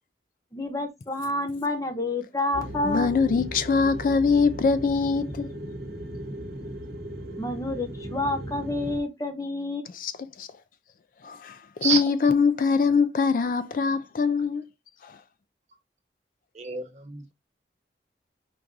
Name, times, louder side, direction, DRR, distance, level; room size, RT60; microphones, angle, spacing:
voice 1, 0.5-3.1 7.4-9.8, left 2 dB, 20° left, 0.8 m, -29 dB
sound 1, 2.5-9.0, right 1 dB, 60° right, 1.0 m, -37 dB
voice 2, 2.8-5.5 10.0-10.1 10.4-10.5 11.2-14.7 15.0-15.2, left 5 dB, 50° left, 0.3 m, -23 dB
voice 3, 16.5-17.3, right 6 dB, 40° right, 0.9 m, -28 dB
4.6 x 2.5 x 3.7 m
head